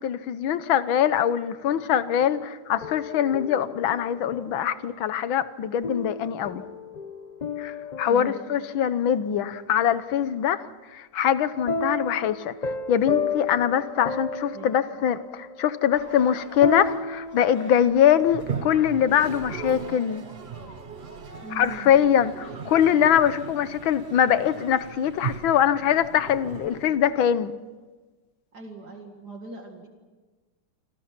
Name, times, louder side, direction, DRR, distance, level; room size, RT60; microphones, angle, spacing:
voice 1, 0.0-6.6 7.6-10.6 10.9-12.5 12.9-20.2 21.5-27.5, left 9 dB, 75° left, 14 dB, 1.7 m, -23 dB
sound 1, 2.2-4.9 5.8-9.2 11.7-17.7, left 3 dB, 45° left, 0.5 m, -33 dB
voice 2, 8.0-8.4 14.5-14.8 21.4-22.1 28.5-29.9, right 4 dB, 55° right, 3 dB, 2.5 m, -40 dB
sound 2, 15.9-23.3, equal, 10° right, 2.9 m, -46 dB
Toilet flush, 18.3-27.4, right 7 dB, 80° right, 0.5 m, -38 dB
28.5 x 25.5 x 5.9 m, 1.3 s
omnidirectional pair, 2.2 m